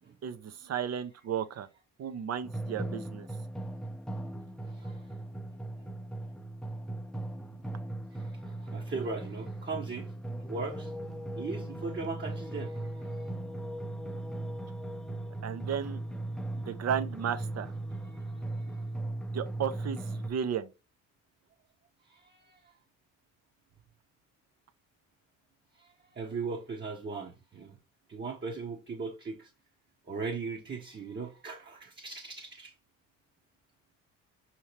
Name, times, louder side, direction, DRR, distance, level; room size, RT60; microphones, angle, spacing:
voice 1, 0.2-1.7 2.0-3.3 15.4-16.0 16.7-17.7 19.3-20.7, right 8 dB, 45° right, 0.7 m, -34 dB
sound 1, 2.4-20.3, right 1 dB, ahead, 0.7 m, -38 dB
voice 2, 4.6-5.0 5.8-5.9 8.1-10.1 10.5-10.9 11.4-13.3 18.0-18.8 22.1-22.6 25.8-27.8 28.1-29.5 30.1-32.7, right 4 dB, 30° right, 1.0 m, -39 dB
5.5 x 2.9 x 3.2 m
supercardioid pair, 75°, 35 cm